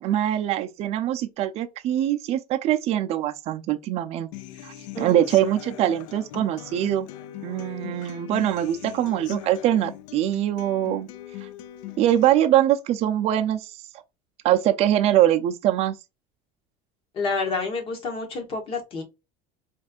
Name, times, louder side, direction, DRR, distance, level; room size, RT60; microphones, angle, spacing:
voice 1, 0.0-4.3 4.6-7.1 7.4-11.1 11.4-11.5 12.0-13.7 14.4-15.9, right 12 dB, 40° right, 0.5 m, -23 dB
Human voice / Acoustic guitar, 4.3-12.3, left 13 dB, 85° left, 0.5 m, -40 dB
voice 2, 4.9-5.5 17.1-19.0, left 4 dB, 35° left, 1.3 m, -29 dB
4.3 x 2.6 x 2.3 m
cardioid pair, 155°, 16 cm